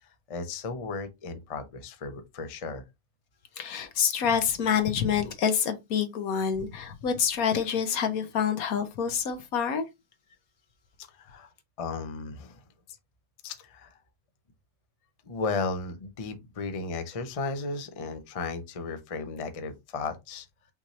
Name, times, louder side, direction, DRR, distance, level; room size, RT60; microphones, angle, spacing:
voice 1, 0.0-2.8 11.1-11.5 11.8-12.6 12.9-13.0 13.4-14.0 15.3-20.5, left 4 dB, 35° left, 0.6 m, -35 dB
voice 2, 3.6-9.8, left 7 dB, 75° left, 1.3 m, -27 dB
5.7 x 2.8 x 3.1 m
omnidirectional pair, 1.5 m